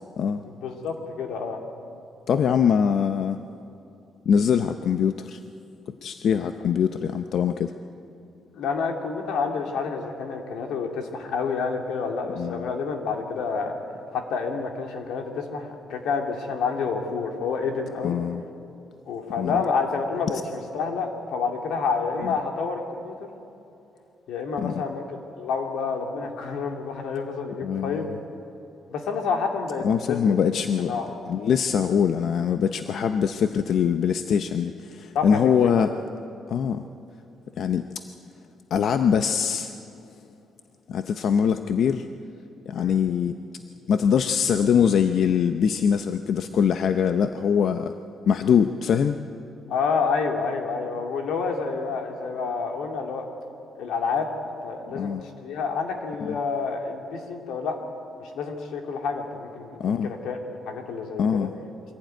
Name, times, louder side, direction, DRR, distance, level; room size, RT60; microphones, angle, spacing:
voice 1, 0.4-1.6 8.5-13.8 14.1-18.2 19.1-23.3 24.3-25.0 25.4-28.1 28.9-30.3 30.8-31.3 32.9-33.0 35.1-35.9 42.8-43.0 49.7-53.3 53.8-55.1 55.4-57.8 58.2-61.5, left 5 dB, 90° left, 3 dB, 2.6 m, -29 dB
voice 2, 2.3-3.4 4.3-5.4 6.0-7.7 12.4-12.7 18.0-18.4 19.4-19.6 22.2-22.3 24.6-24.7 27.6-28.1 29.8-35.9 36.5-36.9 37.6-37.8 38.7-39.7 40.9-42.0 42.7-43.3 43.9-47.9 48.3-49.2 54.9-55.2 59.8-60.1 61.2-61.5, left 7 dB, 60° left, 8 dB, 0.7 m, -23 dB
23.5 x 16.0 x 9.2 m, 2.7 s
cardioid pair, 140°, 0 cm